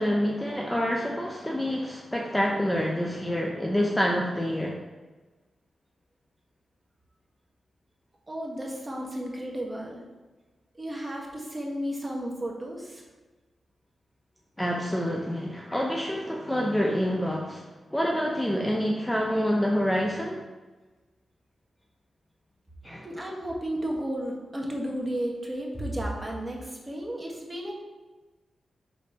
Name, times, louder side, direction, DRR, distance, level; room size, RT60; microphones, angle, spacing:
voice 1, 0.0-4.8 14.6-20.4 22.8-23.1, equal, 10° left, 0 dB, 0.6 m, -27 dB
voice 2, 8.3-10.0 10.8-13.0 23.0-27.7, right 1 dB, 20° right, -1 dB, 1.5 m, -33 dB
5.2 x 3.9 x 5.6 m, 1.2 s
cardioid pair, 80°, 0 cm